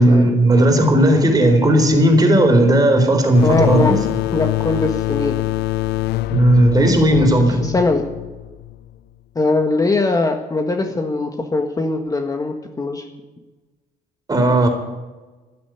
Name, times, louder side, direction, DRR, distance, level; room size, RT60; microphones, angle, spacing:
voice 1, 0.0-4.0 6.3-7.6 14.3-14.7, right 1 dB, 20° right, 5 dB, 4.2 m, -14 dB
sound 1, 3.3-8.8, left 16 dB, 75° left, 0.7 m, -24 dB
voice 2, 3.4-4.0 4.3-5.4 6.8-7.3 7.6-8.0 9.3-13.0, left 3 dB, 20° left, 4 dB, 1.7 m, -21 dB
13.0 x 12.0 x 9.4 m, 1.2 s
cardioid pair, 110°, 17 cm